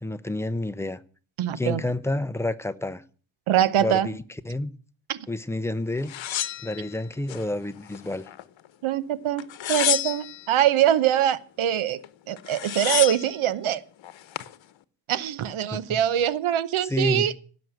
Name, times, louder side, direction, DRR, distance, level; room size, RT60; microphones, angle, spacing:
voice 1, 0.0-1.0 1.6-3.0 3.8-4.7 5.3-6.1 6.6-8.2 15.7-16.0 16.9-17.4, left 2 dB, 5° left, 0.6 m, -29 dB
voice 2, 1.4-1.8 3.5-4.1 5.1-5.2 8.8-12.0 12.3-13.8 15.1-17.4, right 11 dB, 80° right, 1.0 m, -23 dB
sound 1, 6.1-7.4 7.9-8.7 9.4-10.5 12.0-12.1 12.4-13.3 14.0-14.5, left 11 dB, 65° left, 1.0 m, -29 dB
16.5 x 6.4 x 9.2 m
wide cardioid pair, 145°, 48 cm